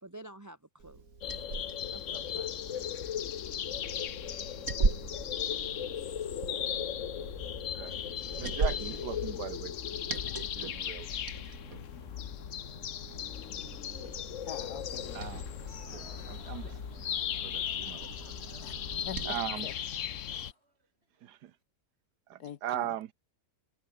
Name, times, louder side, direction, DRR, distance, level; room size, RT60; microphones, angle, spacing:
voice 1, 0.0-1.0 1.9-2.9, right 1 dB, 10° right, 1.1 m, -49 dB
Liquid, 0.8-19.4, right 4 dB, 55° right, 3.5 m, -39 dB
sound 1, 1.2-20.5, left 9 dB, 55° left, 1.1 m, -37 dB
voice 2, 8.4-11.4 15.1-15.4 15.9-17.1 17.4-18.1 19.3-19.7 21.2-21.5 22.3-23.1, right 12 dB, 85° right, 1.5 m, -40 dB
voice 3, 14.5-15.3 18.6-19.3 19.6-19.7 22.4-22.9, left 10 dB, 75° left, 1.6 m, -44 dB
Crowd, 15.4-21.3, right 2 dB, 40° right, 5.1 m, -59 dB
omnidirectional pair, 1.7 m